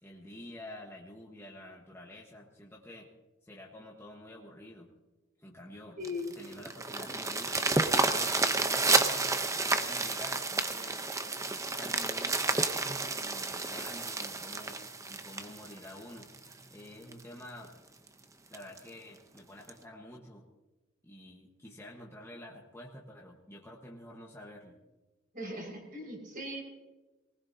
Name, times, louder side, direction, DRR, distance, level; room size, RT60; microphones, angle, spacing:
voice 1, 0.0-3.1 3.4-4.9 5.4-6.0 6.4-7.5 7.9-11.0 11.7-14.8 15.1-16.3 16.7-17.7 18.5-20.5 21.0-24.8, left 1 dB, 15° left, -2 dB, 1.3 m, -49 dB
sound 1, 6.0-16.5 17.1-17.2 17.6-17.7 18.1-18.2 18.5-18.8 19.7-19.8, right 3 dB, 15° right, 0.7 m, -30 dB
voice 2, 6.0-6.3 25.3-26.6, left 2 dB, 45° right, -1 dB, 5.4 m, -39 dB
20.0 x 19.5 x 2.8 m, 1.1 s
head